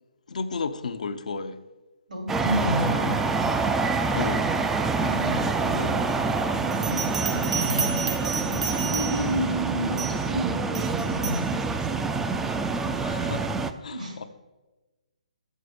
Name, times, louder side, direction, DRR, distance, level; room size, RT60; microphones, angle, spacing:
voice 1, 0.3-1.6 4.1-4.5 12.9-13.5 13.8-14.2, left 4 dB, 70° left, 0.6 m, -33 dB
voice 2, 2.1-3.2 5.1-6.0 6.3-11.9 13.9-14.3, equal, 80° right, 2.9 m, -31 dB
sound 1, 2.3-13.7, right 4 dB, 5° right, 0.4 m, -26 dB
Bell, 6.7-9.4 10.0-10.3 10.7-11.5, right 6 dB, 60° right, 1.0 m, -31 dB
6.7 x 6.5 x 6.8 m
hypercardioid pair, 150°, 4 cm